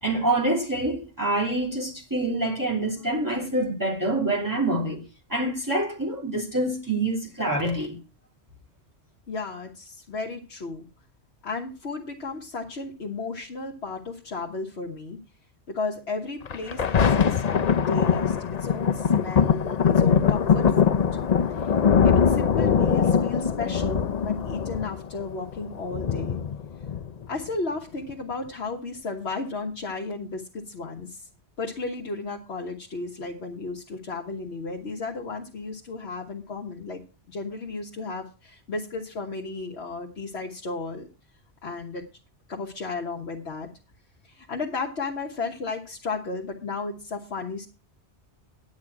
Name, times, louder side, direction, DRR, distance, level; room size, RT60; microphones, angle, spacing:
voice 1, 0.0-5.0 5.3-8.0, right 2 dB, 15° right, 3.0 m, -26 dB
voice 2, 9.3-10.9 11.4-15.2 15.7-21.1 21.5-21.7 22.0-26.4 27.3-31.3 31.6-37.0 37.3-41.1 41.6-42.1 42.5-43.7 44.2-47.7, left 3 dB, 70° left, 1.6 m, -34 dB
Thunder, 16.5-27.5 28.1-28.2, left 7 dB, 45° left, 0.6 m, -22 dB
11.0 x 9.4 x 4.7 m
omnidirectional pair, 1.1 m